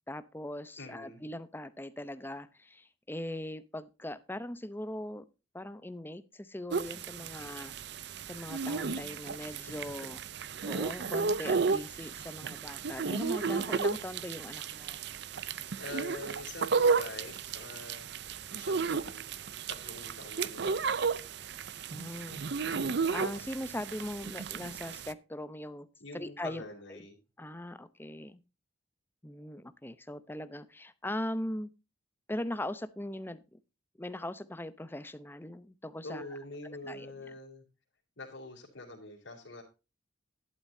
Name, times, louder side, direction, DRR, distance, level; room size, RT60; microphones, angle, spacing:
voice 1, 0.1-5.2 5.5-7.8 8.2-10.2 10.6-15.0 21.9-22.4 23.1-25.9 26.1-26.6 26.9-27.0 27.4-28.4 29.2-31.7 32.3-33.6 34.0-36.2 36.6-37.1, left 1 dB, 10° left, 14 dB, 0.7 m, -40 dB
voice 2, 0.8-1.2 9.7-10.1 15.8-18.1 18.5-21.0 26.0-27.1 36.0-37.6 38.2-39.6, left 2 dB, 90° left, -4 dB, 3.3 m, -45 dB
sound 1, 6.7-25.1, right 5 dB, 60° right, 0.6 m, -33 dB
11.5 x 11.5 x 2.7 m, 0.29 s
head